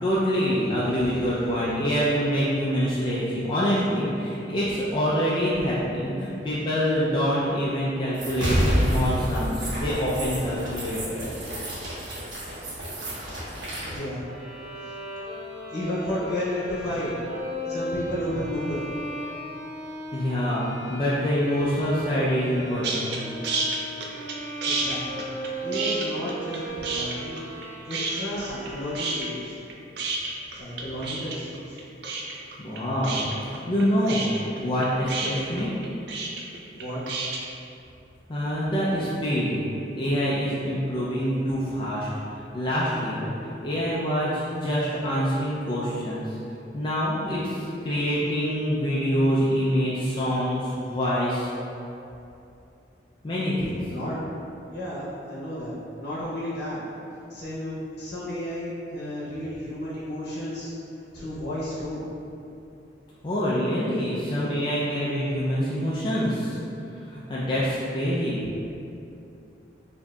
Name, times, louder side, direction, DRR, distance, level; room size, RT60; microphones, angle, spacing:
voice 1, 0.0-11.3 20.1-23.2 32.6-34.3 34.6-35.7 38.3-39.6 39.9-43.3 43.6-46.4 46.7-51.5 53.2-53.8 63.2-66.6 67.1-68.4, equal, 25° left, -8 dB, 0.4 m, -26 dB
sound 1, 8.1-14.0, equal, 80° right, 1.0 m, -28 dB
voice 2, 13.8-14.2 14.8-14.9 15.7-17.1 17.7-18.9 24.6-25.2 25.6-27.4 27.9-29.6 30.5-31.8 36.8-37.0 53.9-54.2 54.7-56.8 57.3-60.7 61.1-62.1, left 1 dB, 60° left, -9 dB, 0.8 m, -32 dB
Bowed string instrument, 14.2-29.5, right 1 dB, 40° right, 0.9 m, -37 dB
sound 2, 22.8-23.2 23.4-24.3 24.6-26.6 26.8-27.6 27.9-28.7 28.9-37.4, right 3 dB, 65° right, 0.5 m, -30 dB
4.7 x 2.7 x 2.3 m, 2.7 s
head